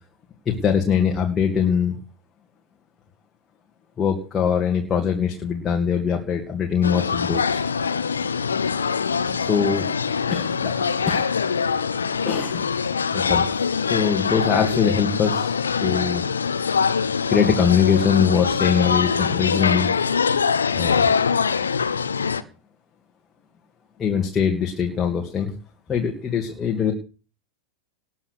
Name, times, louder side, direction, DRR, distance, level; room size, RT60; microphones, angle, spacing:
voice 1, 0.5-2.0 4.0-7.6 9.4-9.8 10.3-11.3 12.2-12.6 13.1-13.5 13.9-16.2 17.3-19.9 20.2-20.3 20.7-21.1 24.0-25.5 25.9-26.9, left 7 dB, 20° left, 2 dB, 2.4 m, -22 dB
sound 1, 6.8-22.4, left 6 dB, 70° left, 1.1 m, -23 dB
20.0 x 7.9 x 6.6 m, 0.37 s
figure-of-eight pair, 90°, 0 cm